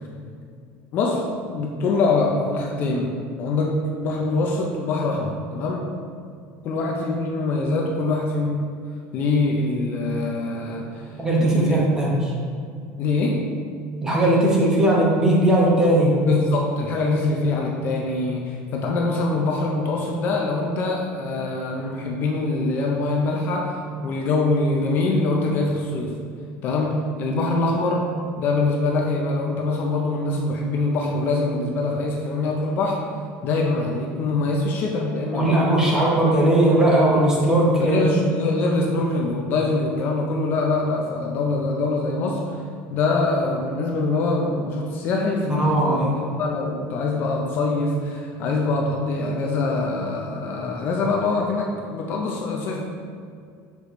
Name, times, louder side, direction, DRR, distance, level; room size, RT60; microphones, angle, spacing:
voice 1, 0.9-5.9 6.6-8.6 9.1-11.8 13.0-13.4 16.3-26.2 26.6-28.1 28.4-33.0 33.4-35.9 37.8-42.6 42.9-52.8, left 3 dB, 35° left, 0 dB, 0.5 m, -24 dB
voice 2, 11.2-12.3 14.0-16.1 35.3-38.1 45.5-46.1, right 1 dB, 10° right, -4 dB, 0.9 m, -18 dB
6.7 x 4.7 x 3.1 m, 2.3 s
cardioid pair, 180°, 6 cm